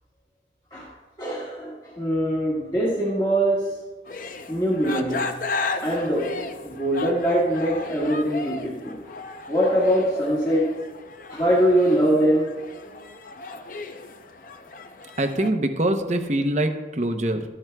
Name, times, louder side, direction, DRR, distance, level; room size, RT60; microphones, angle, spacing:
voice 1, 1.2-3.8 4.5-5.3 5.8-9.0 9.5-10.8 11.3-12.5, equal, 25° left, -8 dB, 1.7 m, -23 dB
sound 1, 4.1-15.5, left 3 dB, 50° left, 0.6 m, -35 dB
voice 2, 15.2-17.4, right 1 dB, 40° right, 7 dB, 0.7 m, -24 dB
13.5 x 10.5 x 2.3 m, 1.3 s
head